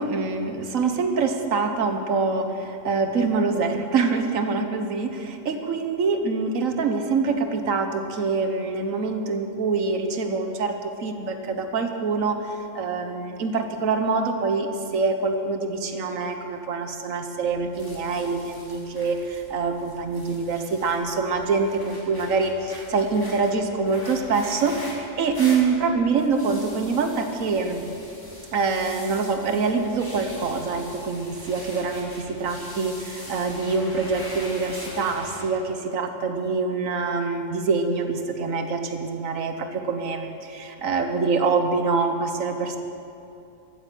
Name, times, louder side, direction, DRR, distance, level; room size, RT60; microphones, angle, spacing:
voice 1, 0.0-12.4 12.7-27.8 28.5-42.8, right 4 dB, 85° right, 6 dB, 1.4 m, -25 dB
sound 1, 17.4-35.5, equal, 15° left, 2.4 m, -42 dB
14.0 x 8.9 x 7.5 m, 2.7 s
omnidirectional pair, 1.3 m